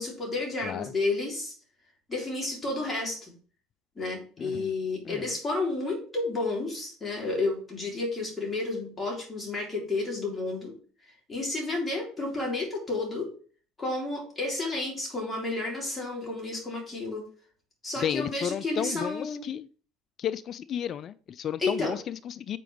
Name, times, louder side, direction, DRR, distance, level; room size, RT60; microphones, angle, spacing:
voice 1, 0.0-1.5 2.1-3.3 4.0-10.7 11.3-13.3 13.8-17.2 17.8-19.4 21.6-22.0, left 2 dB, 20° left, 3.6 m, -31 dB
voice 2, 4.4-4.7 5.0-5.3 18.0-19.7 20.2-22.6, left 9 dB, 45° left, 0.3 m, -33 dB
7.5 x 4.6 x 3.5 m
hypercardioid pair, 80°, 0 cm